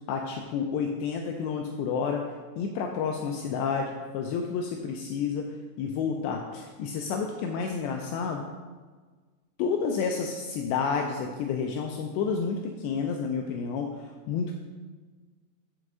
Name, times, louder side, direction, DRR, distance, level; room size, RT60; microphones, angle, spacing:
voice 1, 0.1-2.3 2.6-5.5 5.8-8.4 9.6-14.6, left 5 dB, 90° left, 2 dB, 2.5 m, -30 dB
6.2 x 6.1 x 6.6 m, 1.4 s
omnidirectional pair, 5.6 m